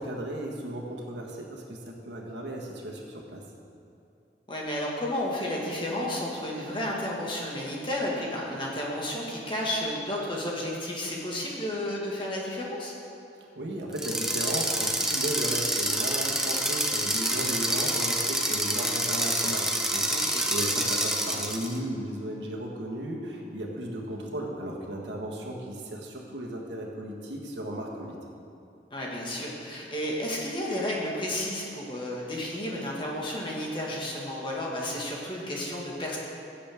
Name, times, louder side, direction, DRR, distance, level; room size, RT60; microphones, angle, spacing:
voice 1, 0.0-3.4 13.5-28.2, right 1 dB, 85° right, -1 dB, 1.5 m, -35 dB
voice 2, 4.5-12.9 20.1-20.4 28.9-36.2, left 1 dB, 30° left, -3 dB, 1.7 m, -32 dB
sound 1, 13.9-21.8, right 1 dB, 5° right, 0.6 m, -27 dB
16.0 x 7.5 x 3.6 m, 2.6 s
head